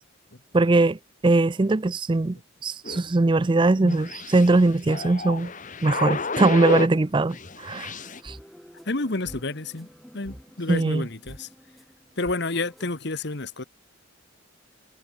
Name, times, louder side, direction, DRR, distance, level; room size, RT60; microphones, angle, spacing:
voice 1, 0.5-1.0 1.2-2.4 2.6-5.5 5.8-7.9 8.2-8.4 10.7-11.1, right 2 dB, 25° right, 0.4 m, -21 dB
sound 1, 2.8-7.0 7.3-8.2, left 3 dB, 40° left, 1.4 m, -32 dB
sound 2, 7.9-12.9, equal, ahead, 7.3 m, -48 dB
voice 2, 8.8-9.9 10.1-11.5 12.2-13.6, left 2 dB, 55° left, 1.5 m, -30 dB
head